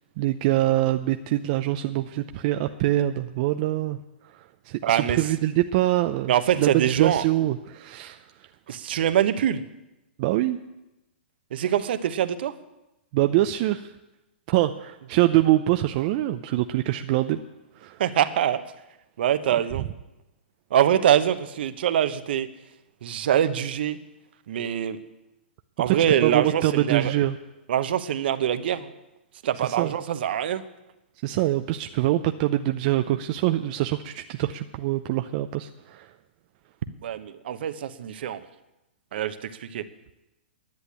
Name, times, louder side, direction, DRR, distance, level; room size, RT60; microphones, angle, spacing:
voice 1, 0.2-4.0 4.7-8.2 10.2-10.6 13.1-13.9 14.5-17.4 17.8-18.0 19.8-19.9 25.9-27.4 29.6-29.9 31.2-36.1, right 15 dB, 45° right, 7 dB, 0.6 m, -24 dB
voice 2, 4.8-5.2 6.3-7.2 8.7-9.6 11.5-12.5 18.0-18.6 19.2-19.8 20.7-22.5 23.0-24.0 24.5-25.0 25.8-27.1 27.7-28.9 29.4-30.6 37.0-38.4 39.1-39.8, right 10 dB, 65° right, 11 dB, 1.0 m, -24 dB
10.5 x 8.0 x 10.0 m, 0.96 s
hypercardioid pair, 135°, 6 cm